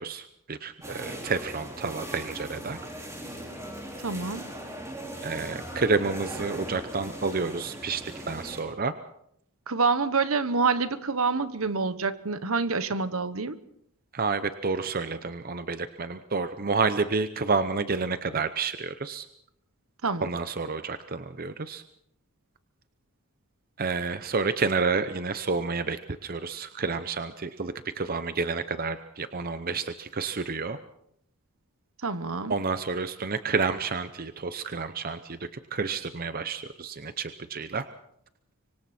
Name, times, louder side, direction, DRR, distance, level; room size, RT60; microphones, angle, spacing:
voice 1, 0.0-2.8 5.2-8.9 14.1-19.3 20.2-21.8 23.8-30.8 32.5-37.9, right 4 dB, 40° right, 11 dB, 0.8 m, -30 dB
sound 1, 0.8-8.6, right 1 dB, 15° right, 4.7 m, -39 dB
voice 2, 4.0-4.5 9.7-13.6 20.0-20.3 32.0-32.5, right 4 dB, 65° right, 13 dB, 1.2 m, -27 dB
25.5 x 24.5 x 4.4 m, 0.73 s
head